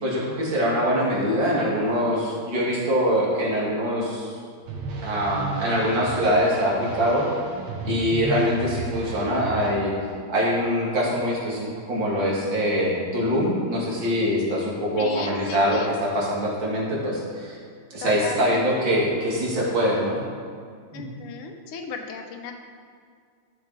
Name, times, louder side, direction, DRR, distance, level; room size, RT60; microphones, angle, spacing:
voice 1, 0.0-4.3 5.0-7.2 7.8-9.9 10.3-17.6 17.9-20.2 20.9-21.0, equal, 60° right, -5 dB, 2.6 m, -23 dB
sound 1, 4.7-9.7, right 3 dB, 80° right, 2.0 m, -33 dB
voice 2, 15.0-15.9 18.0-18.9 20.9-22.5, left 5 dB, 90° left, 5 dB, 1.8 m, -35 dB
13.0 x 6.6 x 4.0 m, 2.1 s
omnidirectional pair, 2.3 m